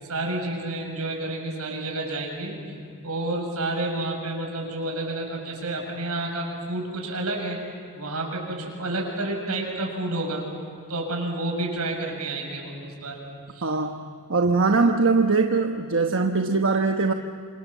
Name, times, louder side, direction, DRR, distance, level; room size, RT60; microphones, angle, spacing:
voice 1, 0.0-2.6 3.0-7.6 7.9-10.4 10.9-13.2 13.5-13.7, right 2 dB, 85° right, 1 dB, 7.1 m, -30 dB
voice 2, 13.6-17.1, right 4 dB, 60° right, 4 dB, 1.1 m, -22 dB
28.0 x 26.5 x 7.4 m, 2.5 s
head